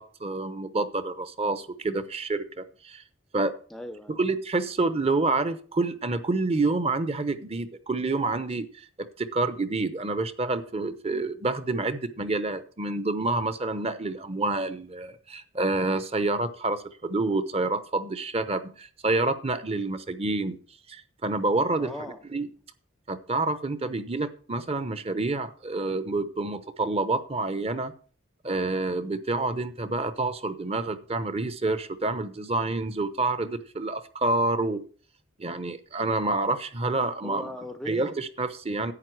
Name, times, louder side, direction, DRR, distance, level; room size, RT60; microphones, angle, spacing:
voice 1, 0.0-3.0 3.3-3.5 4.2-8.9 9.2-20.6 20.9-21.9 22.3-22.5 23.1-27.9 28.4-34.8 35.4-37.5 37.9-38.9, right 2 dB, 30° right, 12 dB, 0.8 m, -28 dB
voice 2, 3.7-4.2 21.8-22.2 37.2-38.2 38.8-38.9, left 1 dB, ahead, 8 dB, 0.5 m, -39 dB
11.0 x 8.6 x 4.6 m, 0.42 s
head